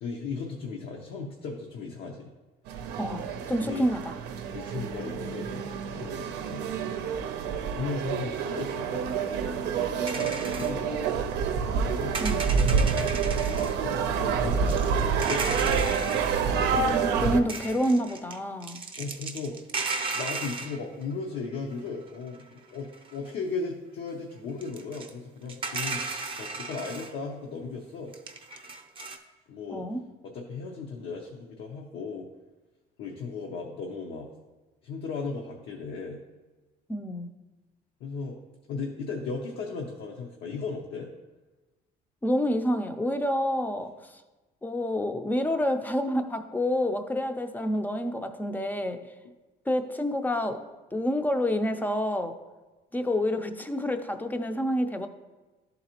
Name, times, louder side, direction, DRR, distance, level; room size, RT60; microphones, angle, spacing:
voice 1, 0.0-2.3 3.6-3.9 4.5-5.6 6.0-6.7 7.4-9.2 10.2-11.1 11.7-12.2 12.6-13.1 13.4-15.8 19.0-19.7 20.1-26.1 26.4-28.1 29.5-29.8 30.2-32.3 33.0-34.3 34.8-36.2 38.0-38.4 38.7-41.1, left 4 dB, 80° left, 0 dB, 0.7 m, -36 dB
sound 1, 2.7-17.4, right 6 dB, 85° right, 0.5 m, -28 dB
voice 2, 3.0-4.2 12.2-12.4 16.8-18.8 29.7-30.0 36.9-37.3 42.2-44.2 44.6-49.0 49.7-50.6 50.9-52.4 52.9-55.1, equal, 10° left, 8 dB, 0.5 m, -28 dB
sound 2, 10.1-10.7 12.1-13.8 14.5-16.5 17.0-17.2 17.5-21.0 21.9-22.0 22.3-22.4 22.9-23.3 24.6-25.1 25.5-27.1 28.1-29.2, right 3 dB, 30° right, 0.6 m, -35 dB
11.0 x 4.0 x 2.9 m, 1.2 s
cardioid pair, 110°, 17 cm